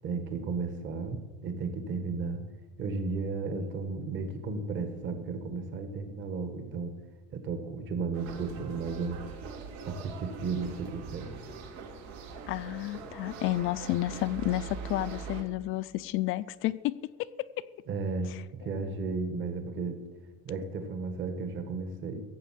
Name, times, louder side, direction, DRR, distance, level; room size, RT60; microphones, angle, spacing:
voice 1, 0.0-2.4 2.8-6.9 7.3-9.2 9.8-11.4 17.9-20.0 20.4-22.2, right 4 dB, 40° right, 7 dB, 1.6 m, -34 dB
sound 1, 8.1-15.4, right 5 dB, 90° right, 2.2 m, -42 dB
voice 2, 12.5-17.1 17.4-17.5, left 16 dB, 45° left, 15 dB, 0.4 m, -31 dB
16.5 x 7.4 x 7.5 m, 1.2 s
cardioid pair, 155°, 29 cm